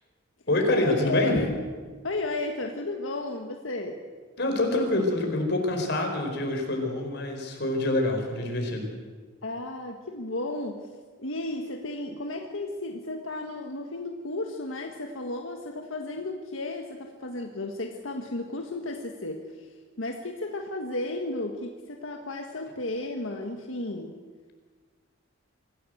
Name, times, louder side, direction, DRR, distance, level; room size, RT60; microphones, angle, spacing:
voice 1, 0.5-1.5 4.4-8.9, left 2 dB, 55° left, 3 dB, 4.7 m, -26 dB
voice 2, 1.0-1.5 2.0-4.0 9.4-10.9 11.2-19.7 20.0-24.2, left 2 dB, 90° left, 3 dB, 1.7 m, -33 dB
24.5 x 15.5 x 8.0 m, 1.5 s
head